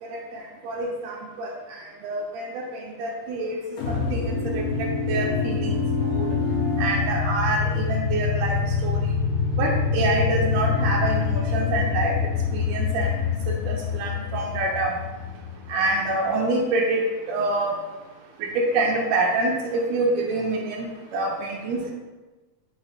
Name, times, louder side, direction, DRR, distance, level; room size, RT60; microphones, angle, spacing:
voice 1, 0.0-3.6 3.9-6.4 6.8-9.1 9.6-13.1 13.5-15.0 15.7-17.7 18.4-20.9 21.1-21.9, right 2 dB, 80° right, -1 dB, 1.6 m, -27 dB
sound 1, 3.8-16.0, left 5 dB, 80° left, 2.1 m, -25 dB
5.1 x 2.1 x 3.9 m, 1.2 s
omnidirectional pair, 3.6 m